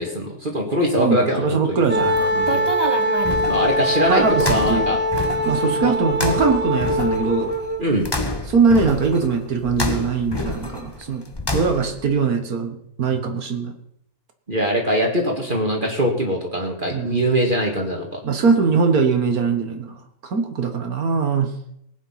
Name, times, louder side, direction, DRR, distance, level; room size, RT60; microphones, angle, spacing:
voice 1, 0.0-1.8 3.4-5.0 5.6-5.9 7.8-8.1 14.5-18.2, equal, 35° right, 0 dB, 2.2 m, -22 dB
voice 2, 1.0-2.7 4.1-5.0 5.5-7.5 8.5-11.2 11.5-13.7 16.9-17.2 18.2-19.9 20.2-21.5, right 5 dB, 75° right, 5 dB, 1.9 m, -21 dB
sound 1, 1.9-12.1, left 2 dB, 15° left, 1.4 m, -29 dB
Wind instrument woodwind instrument, 1.9-7.9, equal, 5° right, 1.3 m, -22 dB
18.5 x 8.9 x 5.8 m, 0.75 s
omnidirectional pair, 1.6 m